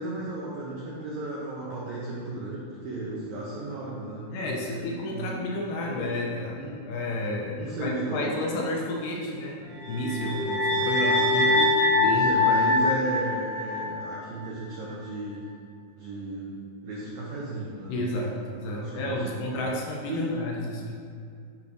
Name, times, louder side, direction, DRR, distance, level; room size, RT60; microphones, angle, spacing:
voice 1, 0.0-5.5 5.9-6.1 6.5-6.7 7.6-8.3 10.8-11.7 12.1-15.4 15.9-16.5 16.8-19.3 20.1-20.2, right 2 dB, 90° right, -5 dB, 1.6 m, -35 dB
voice 2, 4.3-12.4 17.9-20.9, left 1 dB, 80° left, -1 dB, 2.0 m, -31 dB
sound 1, 9.8-14.1, left 2 dB, 70° right, 2.6 m, -23 dB
8.5 x 5.8 x 2.6 m, 2.3 s
omnidirectional pair, 4.4 m